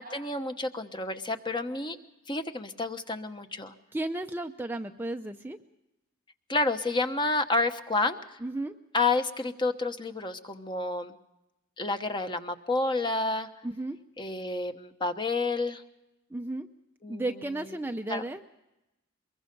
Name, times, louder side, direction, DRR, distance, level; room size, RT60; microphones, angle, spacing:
voice 1, 0.0-2.0 2.3-3.7 6.5-8.4 8.9-11.1 11.8-13.5 14.2-15.8 17.0-17.2 18.1-18.2, left 3 dB, 25° left, 7 dB, 1.1 m, -29 dB
voice 2, 3.9-5.6 8.4-8.8 13.6-14.0 16.3-16.7 17.1-18.4, right 2 dB, 10° right, 5 dB, 0.6 m, -33 dB
23.5 x 22.5 x 5.3 m, 0.95 s
head